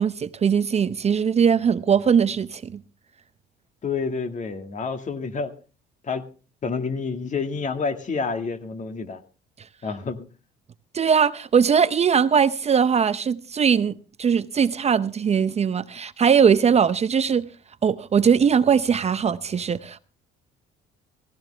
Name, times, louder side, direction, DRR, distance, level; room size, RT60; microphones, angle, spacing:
voice 1, 0.0-2.8 10.9-17.5 17.8-20.0, right 7 dB, 35° right, 0.7 m, -20 dB
voice 2, 3.8-5.5 6.0-6.2 6.6-9.2 9.8-10.2, left 4 dB, 40° left, 2.0 m, -28 dB
16.5 x 15.5 x 3.4 m
cardioid pair, 105°, 20 cm